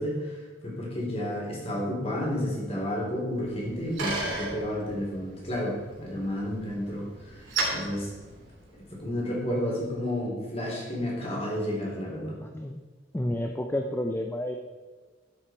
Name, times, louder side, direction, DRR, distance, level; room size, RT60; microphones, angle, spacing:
voice 1, 0.0-7.4 7.7-8.1 9.0-12.4, left 1 dB, 35° left, -3 dB, 3.6 m, -31 dB
Bicycle, 3.3-9.0, right 2 dB, 90° right, 3.4 m, -36 dB
voice 2, 12.4-12.8 13.1-14.5, left 1 dB, 10° left, 3 dB, 0.5 m, -30 dB
13.5 x 7.2 x 4.5 m, 1.4 s
head